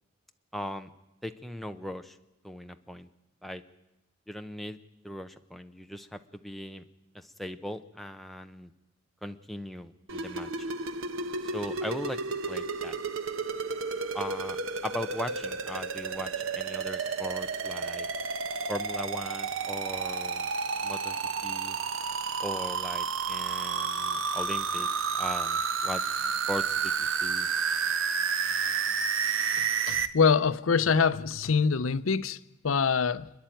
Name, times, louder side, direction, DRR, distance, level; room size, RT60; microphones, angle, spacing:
voice 1, 0.5-0.9 1.2-2.2 2.4-3.1 3.4-3.6 4.3-4.8 5.0-6.8 7.1-8.7 9.2-10.7 11.4-12.2 12.5-13.0 14.1-18.1 18.7-20.5 20.8-21.8 22.4-26.0 26.5-27.5, equal, ahead, 0.8 m, -39 dB
sound 1, 10.1-30.1, right 5 dB, 85° right, 1.1 m, -31 dB
voice 2, 29.9-33.3, left 5 dB, 90° left, 0.6 m, -25 dB
28.0 x 10.5 x 9.1 m
head